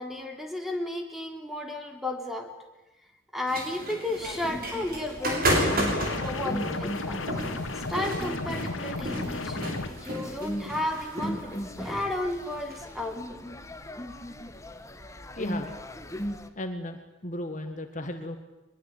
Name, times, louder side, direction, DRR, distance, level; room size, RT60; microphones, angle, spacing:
voice 1, 0.0-2.5 3.3-5.7 6.2-7.2 7.8-13.4, left 1 dB, ahead, 3 dB, 3.4 m, -33 dB
sound 1, 3.5-12.8, right 1 dB, 50° right, 6.9 m, -32 dB
sound 2, 4.2-16.5, equal, 15° left, 1.4 m, -39 dB
sound 3, 5.5-9.9, left 3 dB, 85° left, 2.1 m, -34 dB
voice 2, 15.4-15.7 16.1-16.2 16.6-18.4, left 1 dB, 40° left, 6 dB, 1.8 m, -35 dB
23.5 x 22.0 x 9.1 m, 1.1 s
head